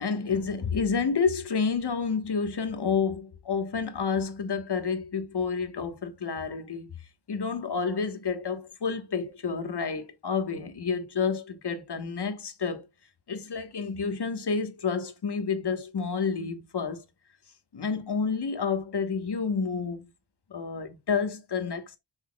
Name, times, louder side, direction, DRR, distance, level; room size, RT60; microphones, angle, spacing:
voice 1, 0.0-7.0 7.3-12.9 13.3-17.0 17.7-20.1 20.5-22.0, left 5 dB, 60° left, 1.4 m, -29 dB
7.8 x 5.6 x 2.3 m
cardioid pair, 60°, 45 cm